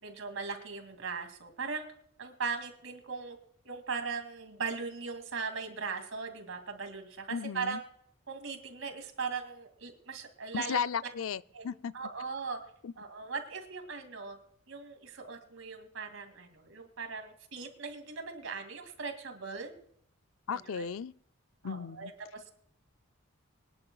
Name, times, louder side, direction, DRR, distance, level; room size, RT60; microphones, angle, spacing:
voice 1, 0.0-1.9 2.2-3.4 3.6-7.8 8.3-10.8 11.5-11.7 11.9-12.6 13.0-14.4 14.7-19.7 20.5-20.9 21.6-22.5, right 5 dB, 75° right, 2.4 m, -39 dB
voice 2, 7.3-7.8 10.5-11.9 12.8-12.9 20.5-21.1 21.6-22.1, left 6 dB, 80° left, 0.4 m, -35 dB
24.5 x 10.5 x 2.3 m
head